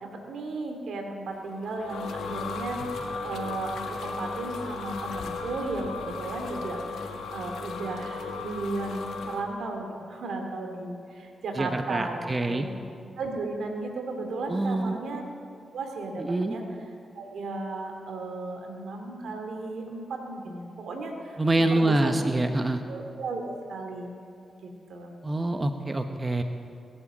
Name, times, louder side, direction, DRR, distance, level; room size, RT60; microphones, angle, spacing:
voice 1, 0.0-2.8 3.2-12.7 13.2-15.2 15.7-16.6 17.1-21.4 21.7-22.2 22.9-24.1 24.6-25.1, right 3 dB, 80° right, 3 dB, 2.4 m, -35 dB
sound 1, 1.4-9.4, left 4 dB, 85° left, 1.4 m, -36 dB
voice 2, 11.5-12.7 14.5-15.0 16.2-16.6 21.4-22.8 25.2-26.4, right 2 dB, 30° right, 6 dB, 1.1 m, -26 dB
21.5 x 8.9 x 7.5 m, 2.4 s
cardioid pair, 55°, 0 cm